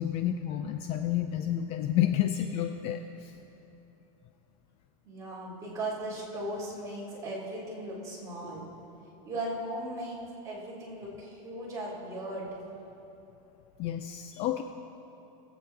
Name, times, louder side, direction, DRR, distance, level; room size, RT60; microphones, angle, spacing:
voice 1, 0.0-3.4 13.8-14.6, left 11 dB, 35° left, 6 dB, 0.4 m, -30 dB
voice 2, 5.0-8.7 9.2-10.2 10.4-12.5, right 1 dB, 15° right, -6 dB, 3.1 m, -37 dB
21.5 x 8.2 x 3.5 m, 2.9 s
supercardioid pair, 155°, 19 cm